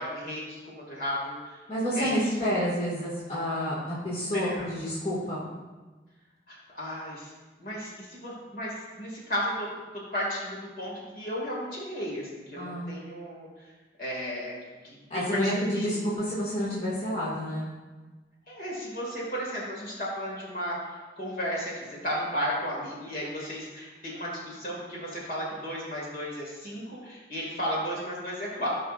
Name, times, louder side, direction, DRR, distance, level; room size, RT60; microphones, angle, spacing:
voice 1, 0.0-1.6 1.9-2.2 4.3-4.7 6.5-7.3 7.6-13.5 14.0-14.5 14.8-16.0 18.5-20.8 21.2-28.7, equal, 50° left, -4 dB, 2.4 m, -34 dB
voice 2, 1.7-5.5 12.6-12.9 15.1-17.7, equal, 35° left, -8 dB, 2.1 m, -29 dB
15.0 x 5.5 x 2.6 m, 1.3 s
head